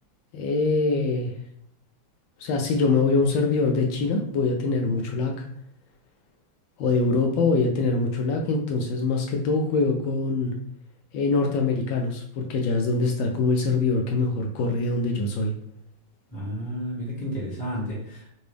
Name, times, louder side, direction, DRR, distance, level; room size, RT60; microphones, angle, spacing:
voice 1, 0.3-1.3 2.4-5.4 6.8-10.5 11.1-15.5, left 3 dB, 75° left, 2 dB, 1.3 m, -24 dB
voice 2, 16.3-18.3, equal, 5° left, -5 dB, 1.0 m, -32 dB
3.9 x 2.6 x 3.2 m, 0.68 s
omnidirectional pair, 2.2 m